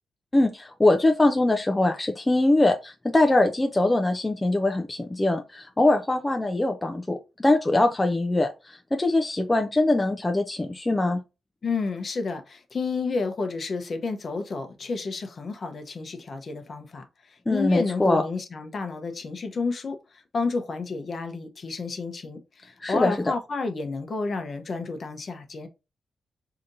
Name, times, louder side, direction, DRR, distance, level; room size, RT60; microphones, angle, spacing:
voice 1, 0.3-11.2 17.5-18.2 22.8-23.1, left 2 dB, 15° left, 0.4 m, -22 dB
voice 2, 11.6-25.7, left 4 dB, 45° left, 0.7 m, -31 dB
5.0 x 2.8 x 2.6 m
wide cardioid pair, 125°, 0 cm